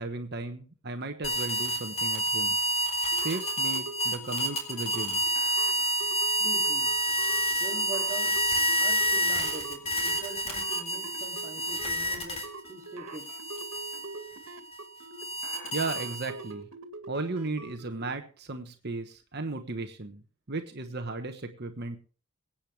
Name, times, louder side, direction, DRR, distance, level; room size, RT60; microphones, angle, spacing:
voice 1, 0.0-2.6 3.1-5.2 15.7-16.7 17.1-20.2 20.5-22.0, right 3 dB, 50° right, 6 dB, 1.2 m, -35 dB
sound 1, 1.2-12.7 13.1-16.5, right 1 dB, 30° left, 3.5 m, -29 dB
sound 2, 3.1-18.1, right 3 dB, 75° right, 2.0 m, -45 dB
voice 2, 6.4-6.9 7.6-8.4 8.8-13.3, right 2 dB, 15° right, -2 dB, 2.8 m, -42 dB
23.5 x 8.8 x 3.4 m, 0.38 s
head